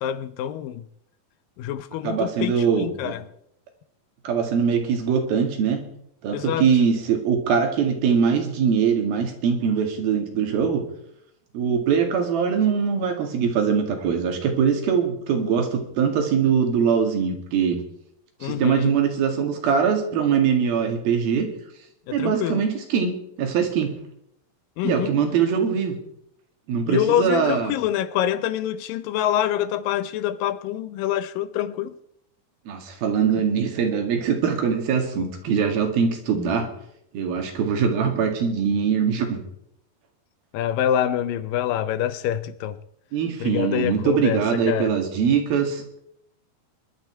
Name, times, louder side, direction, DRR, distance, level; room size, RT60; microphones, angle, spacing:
voice 1, 0.0-0.9 1.6-3.2 6.3-6.7 18.4-19.0 22.1-22.6 24.8-25.1 26.9-32.0 40.5-42.8 43.4-44.4 44.7-44.9, left 11 dB, 75° left, 2.3 m, -26 dB
voice 2, 2.0-3.1 4.2-5.8 6.2-10.8 11.5-17.8 18.4-21.5 22.1-23.9 24.8-26.0 26.7-27.7 32.7-36.7 37.1-39.4 43.1-45.8, right 6 dB, 80° right, 3.9 m, -22 dB
21.5 x 11.5 x 4.6 m
omnidirectional pair, 4.2 m